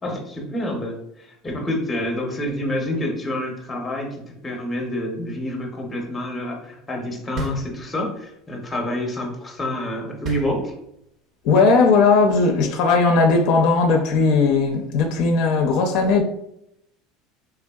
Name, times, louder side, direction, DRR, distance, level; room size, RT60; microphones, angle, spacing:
voice 1, 0.0-10.7, left 1 dB, 10° left, 0.6 m, -28 dB
sound 1, 7.4-8.3 10.2-11.2, equal, 35° right, 0.6 m, -32 dB
voice 2, 11.4-16.2, left 4 dB, 55° left, 0.4 m, -17 dB
3.5 x 3.3 x 2.2 m
cardioid pair, 165°, 0 cm